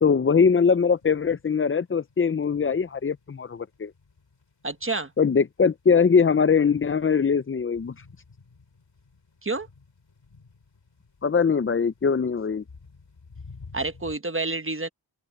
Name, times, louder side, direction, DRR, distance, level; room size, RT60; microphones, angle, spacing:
voice 1, 0.0-3.9 5.2-8.1 11.2-12.6, left 6 dB, 30° left, 0.5 m, -22 dB
sound 1, 0.6-14.2, left 4 dB, 75° left, 5.0 m, -52 dB
voice 2, 4.6-5.1 9.4-9.7 13.7-14.9, right 3 dB, 30° right, 1.1 m, -28 dB
wide cardioid pair, 75°, 44 cm